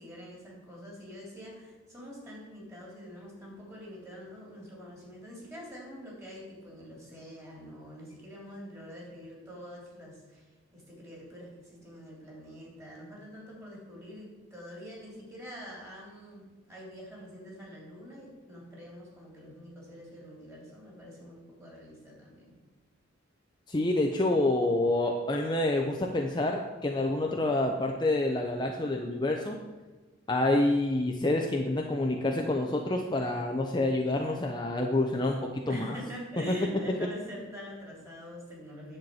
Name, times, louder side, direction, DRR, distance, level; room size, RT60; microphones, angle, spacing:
voice 1, 0.0-10.4 10.7-22.5 35.6-39.0, equal, 15° right, -4 dB, 3.4 m, -45 dB
voice 2, 23.7-29.6 30.3-36.0, left 2 dB, 20° left, 1 dB, 0.7 m, -28 dB
10.5 x 4.5 x 7.8 m, 1.2 s
head